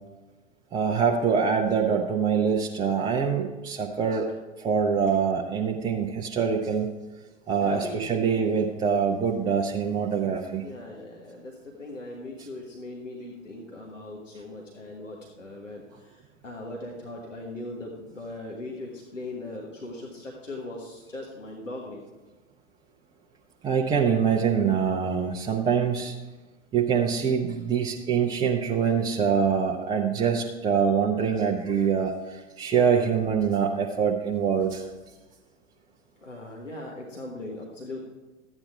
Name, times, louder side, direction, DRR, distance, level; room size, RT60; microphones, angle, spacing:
voice 1, 0.7-4.3 4.6-6.9 7.5-10.6 23.6-26.1 26.7-34.8, right 6 dB, 10° right, -1 dB, 0.5 m, -24 dB
voice 2, 7.6-8.4 10.6-22.0 36.2-38.1, left 2 dB, 85° left, -1 dB, 1.5 m, -39 dB
13.0 x 8.9 x 3.5 m, 1.2 s
figure-of-eight pair, 100°, 37 cm